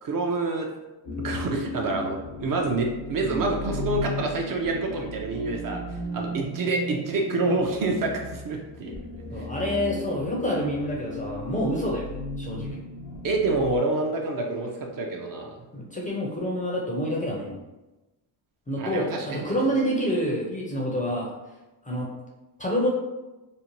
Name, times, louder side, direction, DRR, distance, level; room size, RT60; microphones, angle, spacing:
voice 1, 0.0-0.7 1.2-8.9 9.3-9.5 13.2-15.6 18.8-19.6, right 2 dB, 45° right, 2 dB, 0.5 m, -27 dB
sound 1, 1.1-13.8, left 1 dB, 85° left, 0.8 m, -36 dB
voice 2, 9.3-12.1 12.4-12.8 15.7-17.6 18.7-21.3 21.8-22.1 22.6-22.9, equal, 20° left, -3 dB, 0.4 m, -27 dB
2.6 x 2.1 x 2.9 m, 1.0 s
cardioid pair, 120°, 47 cm